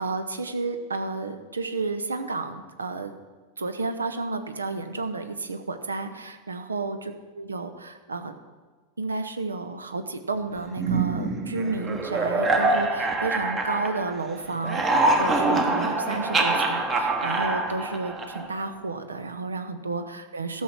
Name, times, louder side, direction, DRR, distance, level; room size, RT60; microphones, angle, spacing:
voice 1, 0.0-3.1 3.6-8.4 9.0-14.8 15.1-20.6, right 3 dB, 75° right, 8 dB, 0.9 m, -31 dB
sound 1, 10.8-14.3 14.5-18.6, right 2 dB, 25° right, 1.2 m, -25 dB
13.5 x 6.4 x 5.9 m, 1.4 s
figure-of-eight pair, 90°, 0 cm